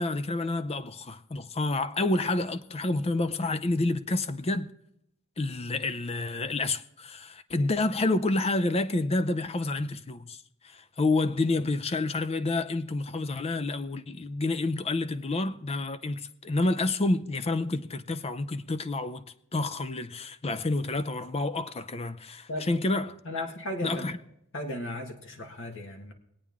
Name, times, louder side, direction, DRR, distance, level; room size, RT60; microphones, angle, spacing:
voice 1, 0.0-4.7 5.4-19.2 19.5-23.2 23.8-24.2, left 2 dB, 30° left, 0.6 m, -29 dB
voice 2, 23.2-24.2 24.5-26.1, left 1 dB, 65° left, 1.9 m, -36 dB
22.0 x 8.7 x 3.6 m
head